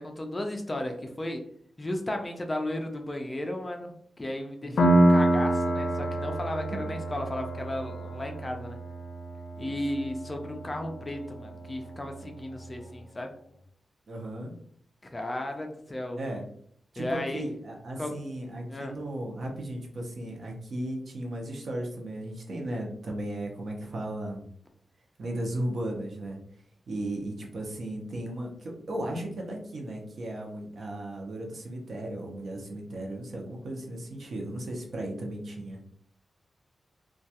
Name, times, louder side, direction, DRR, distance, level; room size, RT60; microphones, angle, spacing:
voice 1, 0.0-1.4 1.8-8.8 9.6-13.3 15.0-16.2 17.0-17.5 18.0-18.2 18.7-18.9, left 1 dB, 20° left, 4 dB, 0.3 m, -34 dB
voice 2, 4.6-5.2 9.6-9.7 14.1-14.5 16.2-16.4 16.9-24.4 25.2-26.4 26.9-35.8, right 1 dB, 60° right, 0 dB, 0.6 m, -36 dB
Piano, 4.8-12.2, right 1 dB, 85° left, 0.4 m, -27 dB
2.2 x 2.2 x 2.7 m, 0.64 s
wide cardioid pair, 150°, 0 cm